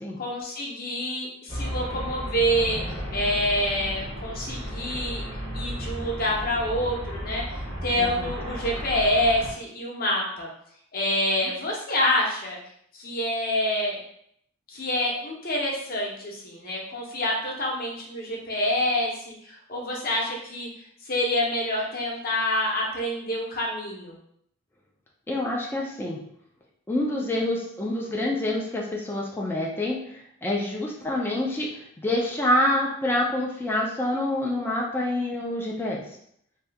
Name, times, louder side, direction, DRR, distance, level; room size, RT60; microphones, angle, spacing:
voice 1, 0.2-2.8 3.1-5.2 5.5-7.4 7.8-10.5 10.9-12.6 12.9-14.0 14.7-20.7 21.1-24.2, left 1 dB, 45° left, -2 dB, 0.8 m, -27 dB
Traffic noise roadway noise, 1.5-9.5, equal, 25° right, 0.7 m, -34 dB
voice 2, 7.9-8.3 25.3-26.2 26.9-36.0, left 1 dB, 10° left, -3 dB, 0.4 m, -27 dB
2.7 x 2.3 x 3.4 m, 0.69 s
head